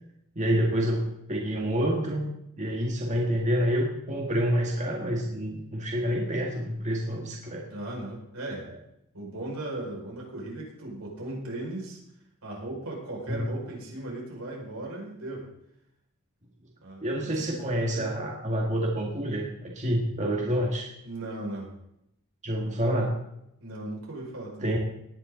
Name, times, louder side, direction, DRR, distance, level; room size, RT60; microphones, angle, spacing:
voice 1, 0.4-2.3 2.6-7.7 13.3-13.5 17.0-20.9 22.4-23.1 24.6-24.8, equal, 35° right, -1 dB, 1.8 m, -28 dB
voice 2, 7.7-8.7 9.1-12.0 12.4-15.5 16.8-18.2 21.0-21.7 23.6-24.7, right 1 dB, 80° right, -2 dB, 5.4 m, -37 dB
18.5 x 10.0 x 3.9 m, 0.81 s
head